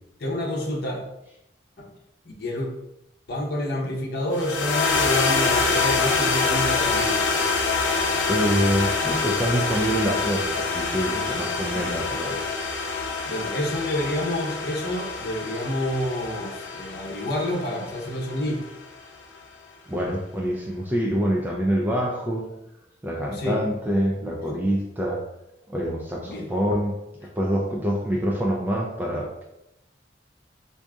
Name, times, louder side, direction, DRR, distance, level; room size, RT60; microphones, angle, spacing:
voice 1, 0.2-1.0 2.2-2.7 3.3-7.2 11.7-11.9 13.3-18.7 23.3-23.6 26.2-26.5, left 1 dB, 60° left, -1 dB, 0.8 m, -28 dB
sound 1, 4.3-18.8, left 4 dB, 85° left, 0.6 m, -26 dB
voice 2, 8.3-12.4 19.9-22.5 23.0-25.2 25.7-26.9 27.2-29.5, equal, 10° right, -1 dB, 0.4 m, -26 dB
4.6 x 2.6 x 2.4 m, 0.86 s
head